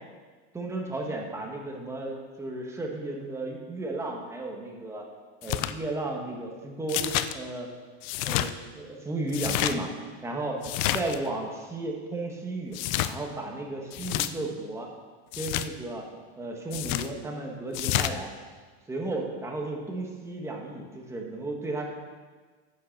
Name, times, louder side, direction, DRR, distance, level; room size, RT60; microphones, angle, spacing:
voice 1, 0.5-5.1 5.4-7.7 8.2-9.9 10.2-10.6 10.9-12.8 13.1-14.9 15.4-16.0 16.4-18.3 18.9-21.8, right 2 dB, 10° right, 0 dB, 1.2 m, -34 dB
sound 1, 5.4-5.7 6.9-7.3 8.0-8.5 9.3-9.7 10.6-11.2 12.7-13.1 13.9-14.3 15.3-15.7 16.7-17.1 17.7-18.1, left 13 dB, 45° left, 0.4 m, -28 dB
9.6 x 6.6 x 6.5 m, 1.4 s
supercardioid pair, 165°, 33 cm